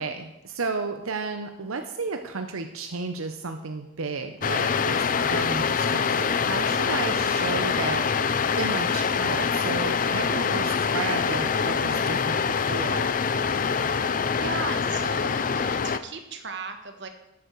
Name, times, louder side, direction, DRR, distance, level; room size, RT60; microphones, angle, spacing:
voice 1, 0.0-13.1, right 4 dB, 85° right, 7 dB, 0.8 m, -33 dB
sound 1, 4.4-16.0, left 6 dB, 40° left, 0.5 m, -25 dB
voice 2, 14.4-17.1, right 4 dB, 55° right, 6 dB, 1.3 m, -36 dB
13.5 x 8.6 x 4.6 m, 0.93 s
head